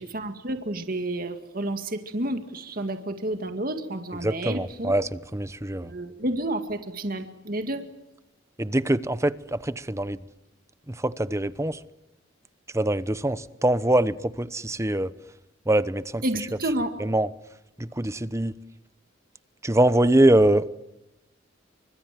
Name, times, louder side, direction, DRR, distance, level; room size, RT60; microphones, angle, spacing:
voice 1, 0.0-4.9 5.8-7.8 16.2-16.9, right 1 dB, 45° right, 2.1 m, -30 dB
voice 2, 4.2-5.9 8.6-10.2 10.9-11.8 12.7-15.1 15.7-16.2 17.0-17.3 17.8-18.6 19.6-20.7, right 1 dB, 15° right, 0.9 m, -23 dB
29.0 x 25.5 x 7.7 m
head